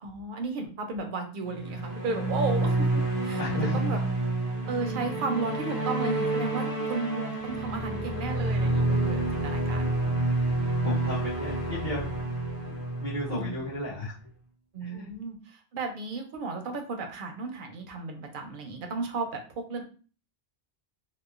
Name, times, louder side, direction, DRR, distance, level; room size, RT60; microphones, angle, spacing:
voice 1, 0.0-3.4 3.7-4.0 4.4-9.9 13.2-13.5 14.7-19.4 19.7-19.8, right 3 dB, 60° right, 4 dB, 0.7 m, -34 dB
sound 1, 1.5-14.0, right 2 dB, 60° left, 1.0 m, -29 dB
voice 2, 3.4-3.8 10.8-12.1 12.7-14.1 14.8-15.1, left 2 dB, 45° left, -13 dB, 1.2 m, -34 dB
2.9 x 2.1 x 2.3 m, 0.38 s
omnidirectional pair, 1.1 m